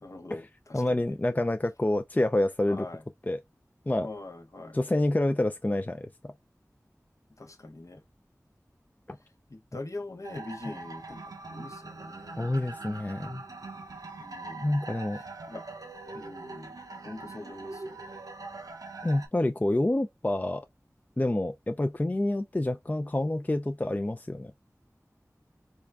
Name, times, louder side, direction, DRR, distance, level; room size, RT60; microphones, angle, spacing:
voice 1, 0.0-1.2 2.7-3.0 4.0-4.8 7.4-8.0 9.5-12.4 14.2-14.7 15.5-15.6 16.1-16.8 17.0-18.0, left 2 dB, 60° left, 0.8 m, -43 dB
voice 2, 0.7-2.9 3.2-3.4 3.9-4.1 4.7-6.3 9.1-9.2 12.4-13.4 14.6-15.2 19.0-20.7 21.2-24.5, left 1 dB, 25° left, 0.4 m, -28 dB
sound 1, 10.2-19.3, right 3 dB, 90° right, 0.7 m, -42 dB
3.7 x 2.4 x 3.3 m
wide cardioid pair, 40°, 6 cm